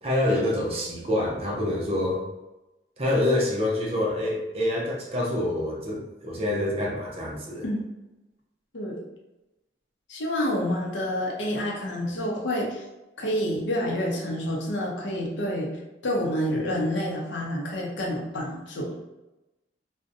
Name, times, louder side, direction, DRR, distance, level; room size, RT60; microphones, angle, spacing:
voice 1, 0.0-2.2 3.0-7.7, left 1 dB, 35° right, -2 dB, 0.5 m, -26 dB
voice 2, 10.1-12.8 13.2-15.7 16.0-18.9, equal, 80° left, -1 dB, 0.6 m, -28 dB
2.6 x 2.1 x 2.5 m, 1.0 s
head